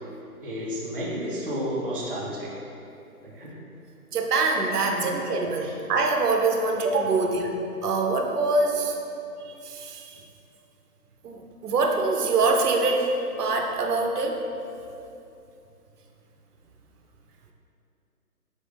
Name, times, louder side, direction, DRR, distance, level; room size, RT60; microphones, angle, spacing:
voice 1, 0.4-2.5 3.2-3.5 4.8-5.1 5.6-5.7, equal, 40° right, -5 dB, 0.4 m, -31 dB
voice 2, 4.1-7.5 7.8-9.0 9.7-10.0 11.2-13.1 13.4-14.4, right 3 dB, 85° right, 2 dB, 0.7 m, -24 dB
3.9 x 3.2 x 3.3 m, 2.7 s
hypercardioid pair, 165°, 45 cm